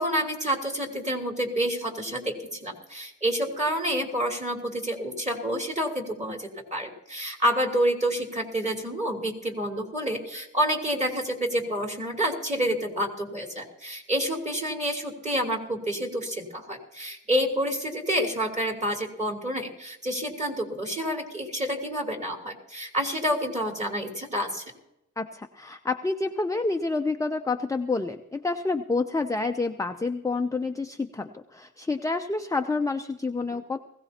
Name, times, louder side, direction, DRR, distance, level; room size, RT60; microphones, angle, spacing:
voice 1, 0.0-24.6, equal, 20° right, 2 dB, 3.1 m, -28 dB
voice 2, 25.2-33.8, left 3 dB, 10° left, 5 dB, 0.6 m, -28 dB
20.0 x 16.5 x 2.9 m, 0.86 s
wide cardioid pair, 100°, 32 cm